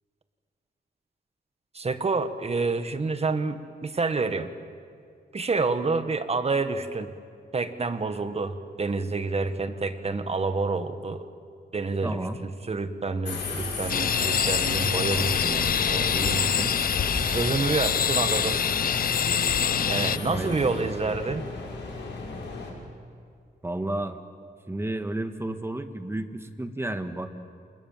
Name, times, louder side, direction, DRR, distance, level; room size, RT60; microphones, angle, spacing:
voice 1, 1.7-4.5 5.3-7.1 7.5-11.3 11.7-16.7 17.3-18.8 19.9-21.5, right 3 dB, 35° right, 9 dB, 1.6 m, -28 dB
voice 2, 12.0-12.4 20.3-20.9 23.6-24.2 24.7-27.3, right 1 dB, 15° right, 8 dB, 1.6 m, -32 dB
Subway metro underground, 13.2-22.7, left 4 dB, 90° left, 5.7 m, -34 dB
sound 1, 13.9-20.2, left 7 dB, 55° left, 0.7 m, -25 dB
29.0 x 28.0 x 7.4 m, 2.2 s
wide cardioid pair, 120°, 18 cm